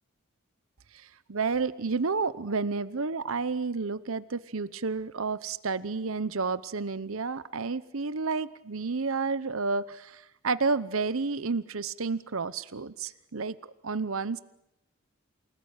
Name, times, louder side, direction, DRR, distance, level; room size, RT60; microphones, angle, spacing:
voice 1, 0.9-14.4, right 4 dB, 75° right, 15 dB, 0.9 m, -31 dB
29.0 x 19.5 x 9.0 m, 0.84 s
head